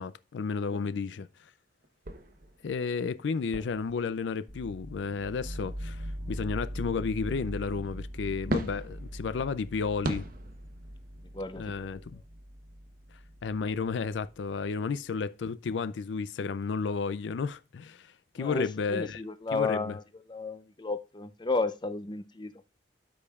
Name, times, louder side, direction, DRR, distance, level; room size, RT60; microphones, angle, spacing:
voice 1, 0.0-1.5 2.6-10.3 11.6-12.2 13.4-19.2 19.5-20.0, left 5 dB, 75° left, 0.4 m, -32 dB
sound 1, 0.9-1.0 1.8-5.0 8.5-14.5 15.1-15.7 16.0-16.1 16.5-16.6, right 1 dB, 50° right, 1.0 m, -40 dB
sound 2, 4.5-14.3, equal, 80° right, 1.7 m, -41 dB
voice 2, 18.4-20.0 20.3-22.5, left 3 dB, 25° left, 0.6 m, -32 dB
12.5 x 5.2 x 2.4 m
head